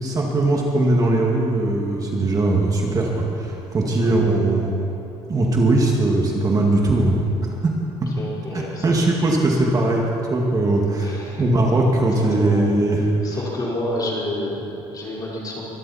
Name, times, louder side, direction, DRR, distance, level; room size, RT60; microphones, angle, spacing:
voice 1, 0.0-4.7 5.3-7.2 7.5-7.7 8.5-13.4, right 2 dB, 30° right, -1 dB, 2.2 m, -20 dB
voice 2, 8.2-9.1 10.9-11.5 12.1-12.7 13.2-15.7, left 1 dB, 35° left, -5 dB, 4.8 m, -29 dB
24.0 x 13.5 x 4.4 m, 2.9 s
cardioid pair, 125°, 12 cm